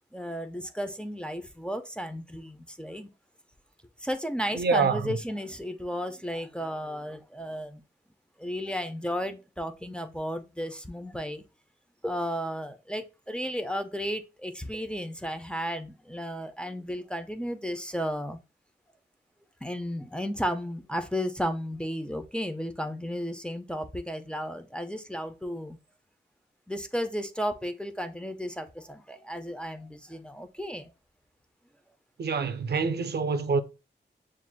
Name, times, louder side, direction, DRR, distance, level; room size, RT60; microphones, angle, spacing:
voice 1, 0.1-3.1 4.0-7.8 8.4-11.4 12.0-18.4 19.6-25.8 26.7-30.9, equal, 5° left, 0.5 m, -34 dB
voice 2, 4.5-5.2 32.2-33.6, right 5 dB, 60° right, 0.5 m, -26 dB
7.3 x 2.5 x 2.2 m
wide cardioid pair, 90°, 19 cm